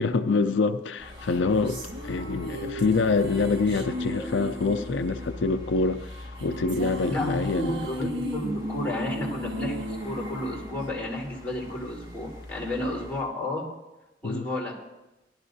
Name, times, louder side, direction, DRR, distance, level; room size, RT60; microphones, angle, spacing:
voice 1, 0.0-7.9 14.2-14.5, left 4 dB, 90° left, 9 dB, 0.5 m, -26 dB
sound 1, 1.0-13.2, left 1 dB, 20° right, 3.1 m, -43 dB
sound 2, 1.2-11.6, equal, 85° right, 1.4 m, -36 dB
voice 2, 7.1-13.7 14.2-14.8, left 1 dB, 10° left, -8 dB, 3.8 m, -32 dB
17.5 x 12.0 x 2.7 m, 0.98 s
head